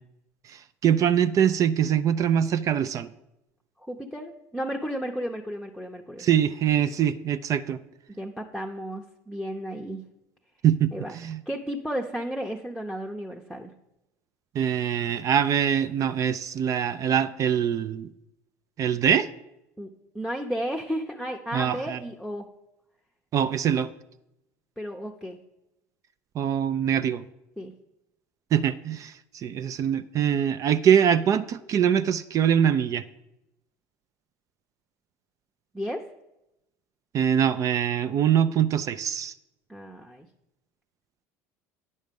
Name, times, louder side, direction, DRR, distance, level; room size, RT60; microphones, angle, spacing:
voice 1, 0.5-3.1 6.2-7.8 10.6-11.4 14.5-18.1 18.8-19.3 21.5-22.0 23.3-23.9 26.4-27.2 28.5-33.0 37.1-39.3, right 9 dB, 45° right, 13 dB, 0.4 m, -23 dB
voice 2, 3.8-6.3 8.1-10.0 10.9-11.1 11.5-13.7 19.8-22.5 24.8-25.4 27.6-27.7 35.7-36.0 39.7-40.3, equal, ahead, 1 dB, 0.8 m, -33 dB
9.5 x 6.4 x 5.3 m, 0.90 s
hypercardioid pair, 85°, 8 cm